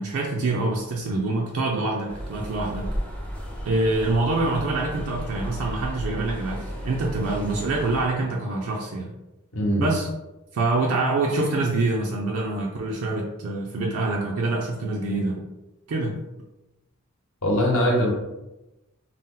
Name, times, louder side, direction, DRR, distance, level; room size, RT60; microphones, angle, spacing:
voice 1, 0.0-2.9 3.6-9.1 9.8-10.1 10.5-15.4 15.9-16.2, right 2 dB, 70° right, -1 dB, 0.4 m, -25 dB
sound 1, 2.1-8.1, equal, 5° left, 0.4 m, -34 dB
voice 2, 9.5-9.9 17.4-18.1, equal, 70° left, -2 dB, 0.9 m, -21 dB
2.7 x 2.0 x 3.7 m, 0.99 s
head